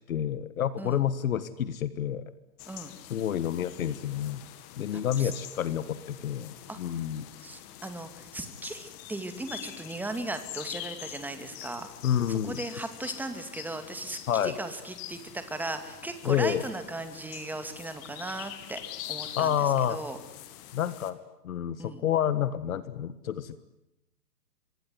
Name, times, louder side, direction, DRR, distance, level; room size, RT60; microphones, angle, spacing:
voice 1, 0.1-2.2 3.1-4.4 4.7-7.2 12.0-12.6 14.3-14.5 16.2-16.6 19.4-20.0 20.7-21.2 21.4-23.6, left 10 dB, 60° left, 15 dB, 1.7 m, -29 dB
sound 1, 2.6-21.1, left 13 dB, 30° left, 2.4 m, -45 dB
voice 2, 4.9-5.3 6.7-6.8 7.4-11.9 12.3-18.8 19.1-20.2 21.8-22.0, right 2 dB, 5° right, 8 dB, 2.3 m, -37 dB
26.0 x 22.5 x 9.7 m, 0.87 s
hypercardioid pair, 130°, 48 cm